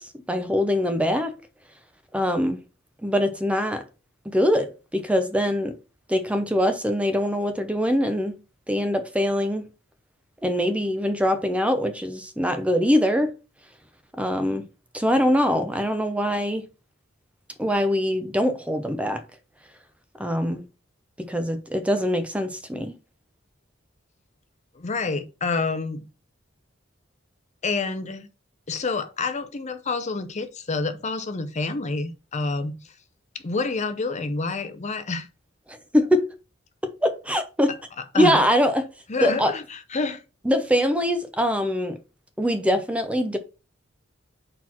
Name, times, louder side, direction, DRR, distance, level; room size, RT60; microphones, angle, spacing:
voice 1, 0.0-1.3 2.1-2.6 3.0-3.8 4.3-5.8 6.1-8.4 8.7-9.7 10.4-13.3 14.1-14.6 14.9-16.7 17.6-19.2 20.2-20.6 21.2-22.9 35.7-36.3 37.0-37.7 38.1-38.9 39.2-39.5 40.4-42.0 42.4-43.4, equal, 5° right, 0.7 m, -23 dB
voice 2, 24.7-26.1 27.6-28.3 28.7-32.9 33.3-35.3 38.1-38.4 39.1-40.2, left 3 dB, 35° left, 0.7 m, -28 dB
4.4 x 4.2 x 5.7 m
head